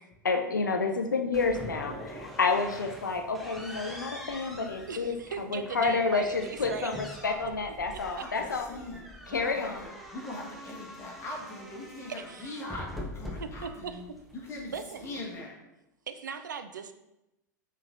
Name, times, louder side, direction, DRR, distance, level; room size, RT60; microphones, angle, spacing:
voice 1, 0.2-5.1 5.5-8.7 9.3-9.8, left 4 dB, 80° left, 4 dB, 0.4 m, -29 dB
sound 1, 1.3-15.4, left 1 dB, ahead, 0.7 m, -44 dB
voice 2, 4.9-6.9 7.9-8.0 12.1-12.6 13.4-14.0 14.7-15.0 16.1-16.9, right 6 dB, 75° right, 9 dB, 0.4 m, -39 dB
voice 3, 8.1-9.0 9.3-15.6, left 1 dB, 25° left, -2 dB, 1.3 m, -41 dB
5.7 x 3.1 x 2.5 m, 0.93 s
figure-of-eight pair, 90°, 10 cm